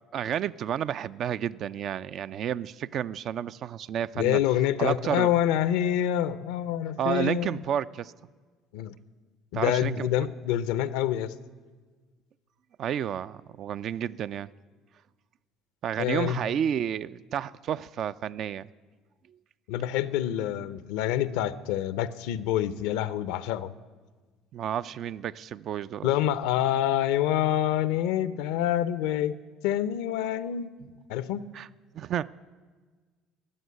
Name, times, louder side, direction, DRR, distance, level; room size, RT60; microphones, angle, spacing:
voice 1, 0.1-4.4 4.8-5.3 7.0-8.1 9.5-10.3 12.8-14.5 15.8-18.7 24.5-26.1 31.5-31.7 31.9-32.3, right 9 dB, 55° right, 15 dB, 0.4 m, -31 dB
voice 2, 4.1-7.6 8.7-8.9 9.5-11.3 16.0-16.4 19.7-23.7 26.0-29.4 29.6-30.7 31.1-31.4, left 11 dB, 80° left, 15 dB, 0.6 m, -27 dB
14.5 x 9.3 x 9.5 m, 1.4 s
supercardioid pair, 85°, 0 cm